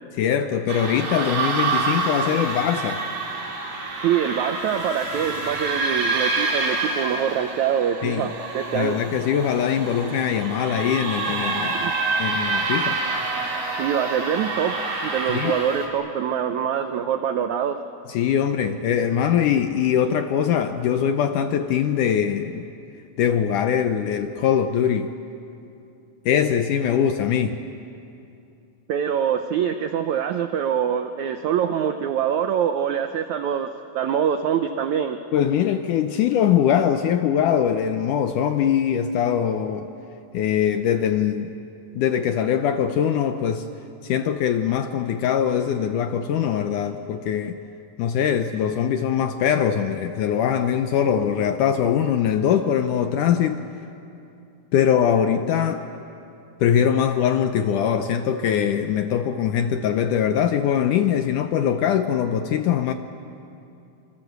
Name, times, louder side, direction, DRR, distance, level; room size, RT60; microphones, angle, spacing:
voice 1, 0.2-3.0 8.0-8.3 8.7-11.8 12.2-13.0 15.3-15.6 18.1-22.7 23.2-25.1 26.3-27.6 35.3-39.9 40.3-41.5 42.0-43.7 44.0-47.6 48.0-53.6 54.7-55.9 56.6-62.9, left 8 dB, 75° left, 8 dB, 1.9 m, -22 dB
sound 1, 0.7-15.9, right 3 dB, 60° right, 5.0 m, -27 dB
voice 2, 4.0-9.0 11.7-11.9 13.8-17.8 28.9-33.7 33.9-35.2, right 8 dB, 85° right, 8 dB, 1.6 m, -24 dB
27.0 x 25.0 x 8.0 m, 2.8 s
omnidirectional pair, 4.5 m